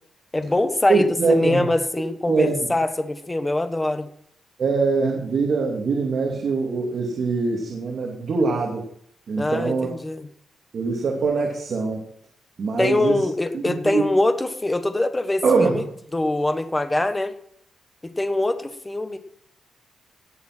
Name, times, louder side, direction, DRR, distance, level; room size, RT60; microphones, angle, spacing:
voice 1, 0.3-4.1 9.4-10.3 12.8-15.8 16.1-17.3 18.2-19.2, left 2 dB, 15° left, 8 dB, 1.3 m, -23 dB
voice 2, 0.9-1.6 2.2-2.7 4.6-8.8 9.3-9.9 10.7-12.0 12.6-13.3 13.5-14.0 15.4-15.8, right 4 dB, 55° right, 0 dB, 2.6 m, -23 dB
18.0 x 7.3 x 6.1 m, 0.68 s
cardioid pair, 125°, 0 cm